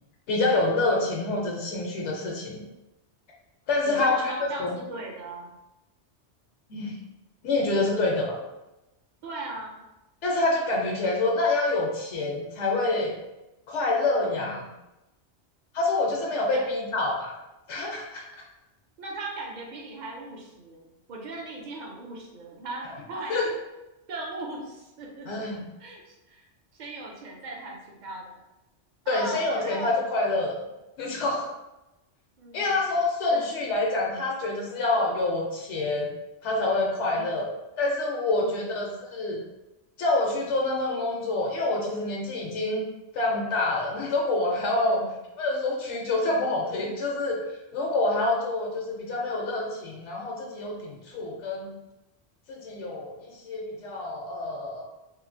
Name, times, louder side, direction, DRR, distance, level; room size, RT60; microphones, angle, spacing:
voice 1, 0.3-2.6 3.7-4.3 4.6-4.7 6.7-7.0 7.4-8.4 10.2-13.1 13.7-14.6 15.7-17.4 17.7-18.2 22.8-22.9 23.3-23.5 25.3-25.6 29.1-30.6 31.0-31.5 32.5-36.1 36.4-37.4 37.8-39.4 40.0-42.9 43.1-45.0 45.4-47.4 47.7-51.7 52.5-54.8, left 2 dB, 80° left, -1 dB, 0.9 m, -27 dB
voice 2, 3.8-5.6 9.2-9.9 14.3-14.7 16.5-16.7 19.0-23.4 24.1-25.3 25.8-26.4 26.7-28.4 29.0-30.0 32.4-32.8 33.3-33.4 37.0-37.4 38.4-38.7 44.8-45.1, right 2 dB, 50° right, -1 dB, 0.6 m, -38 dB
2.9 x 2.4 x 2.5 m, 0.97 s
omnidirectional pair, 1.2 m